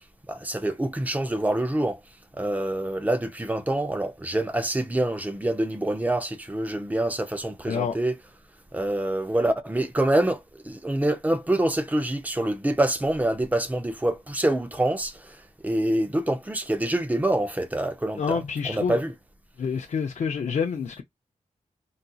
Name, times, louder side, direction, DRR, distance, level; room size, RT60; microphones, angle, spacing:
voice 1, 0.3-2.0 2.3-8.2 8.7-19.1, right 1 dB, 10° right, 0.5 m, -26 dB
voice 2, 18.2-19.0 19.6-21.0, left 6 dB, 65° left, 0.5 m, -27 dB
3.9 x 2.6 x 2.3 m
wide cardioid pair, 150°, 13 cm